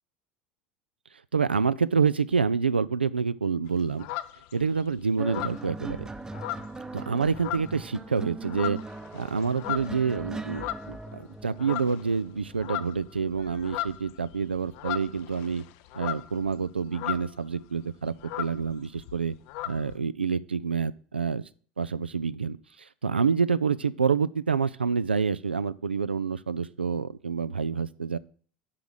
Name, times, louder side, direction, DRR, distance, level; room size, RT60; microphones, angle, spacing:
voice 1, 1.3-4.1 4.5-6.1 6.9-8.8 9.1-15.6 15.9-19.3 19.7-21.4 21.8-28.2, right 5 dB, 85° right, 15 dB, 0.3 m, -27 dB
sound 1, 3.7-4.8 5.2-7.1 7.3-7.9 8.3-11.2 11.6-12.2 12.4-17.5 17.8-17.9 18.1-20.0, left 15 dB, 55° left, 0.5 m, -37 dB
sound 2, 5.2-13.9 14.9-15.1, right 2 dB, 10° right, 0.7 m, -40 dB
7.6 x 5.9 x 6.3 m, 0.43 s
figure-of-eight pair, 75°, 6 cm